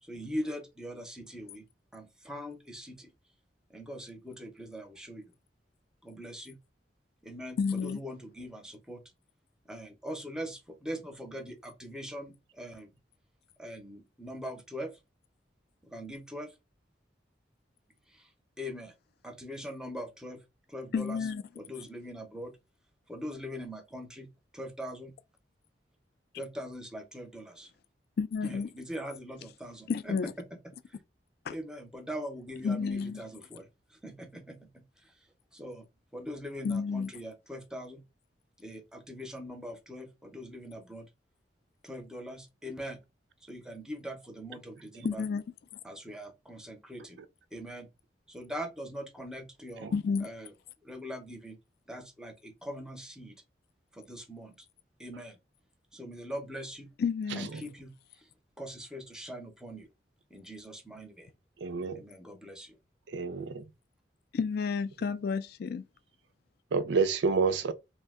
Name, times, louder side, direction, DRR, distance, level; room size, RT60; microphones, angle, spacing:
voice 1, 0.0-1.7 1.9-3.1 3.7-5.3 6.0-6.6 7.2-9.0 9.7-12.9 13.6-15.0 15.8-16.5 18.1-18.3 18.6-18.9 19.2-20.4 20.7-21.2 21.5-22.5 23.1-24.3 24.5-25.1 26.3-27.7 28.4-30.4 30.9-31.0 31.5-35.1 35.5-35.9 36.1-38.0 38.6-41.1 41.8-43.0 43.5-45.2 45.8-47.2 47.5-47.9 48.3-49.9 50.2-50.5 50.8-51.6 51.9-53.4 53.9-54.6 55.0-55.4 55.9-56.9 57.4-58.3 58.6-59.9 60.3-61.3 61.9-62.8, equal, 5° right, 0.6 m, -42 dB
voice 2, 7.6-8.0 20.9-21.4 28.2-28.7 29.9-30.3 31.5-31.6 32.6-33.2 36.6-37.1 45.0-45.4 49.9-50.3 57.0-57.5 64.3-65.8, left 5 dB, 60° left, 0.3 m, -30 dB
voice 3, 61.6-62.0 63.1-63.6 66.7-67.7, right 5 dB, 80° right, 0.4 m, -28 dB
2.6 x 2.1 x 3.5 m
head